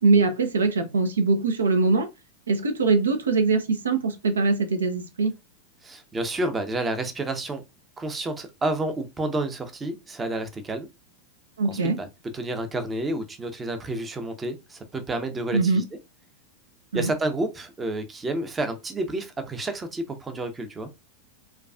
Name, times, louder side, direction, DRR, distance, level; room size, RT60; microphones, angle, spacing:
voice 1, 0.0-2.1 2.5-5.3 11.6-12.0 15.5-15.8 16.9-17.1, right 3 dB, 70° right, 0.5 m, -22 dB
voice 2, 5.8-7.6 8.0-10.9 11.7-12.1 12.3-15.8 16.9-20.9, right 2 dB, 15° right, 0.6 m, -30 dB
4.5 x 2.3 x 2.3 m
figure-of-eight pair, 90°, 0 cm